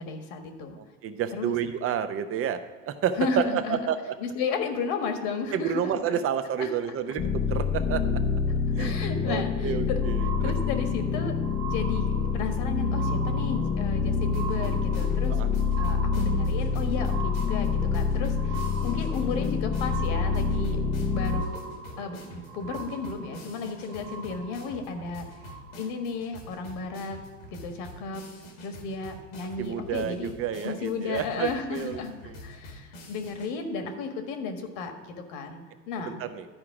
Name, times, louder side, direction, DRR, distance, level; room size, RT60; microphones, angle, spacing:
voice 1, 0.0-0.8 1.3-1.5 3.2-3.9 4.2-6.0 6.6-6.7 8.5-10.0 10.4-11.3 11.6-15.4 15.8-21.6 22.0-27.2 27.5-28.3 28.6-30.3 30.6-32.1 32.4-36.2, left 4 dB, 55° left, 6 dB, 1.5 m, -34 dB
voice 2, 0.8-2.6 2.8-4.1 5.5-8.0 8.8-9.0 9.3-10.5 15.3-15.5 29.6-32.0 36.0-36.4, right 8 dB, 35° right, 10 dB, 0.7 m, -30 dB
sound 1, 7.2-21.4, left 5 dB, 25° left, 0.6 m, -27 dB
sound 2, 9.3-26.2 26.9-27.0, right 5 dB, 80° right, 1.3 m, -41 dB
sound 3, 14.3-33.5, left 1 dB, 80° left, 2.1 m, -46 dB
12.0 x 4.7 x 4.8 m, 1.5 s
hypercardioid pair, 95°, 40 cm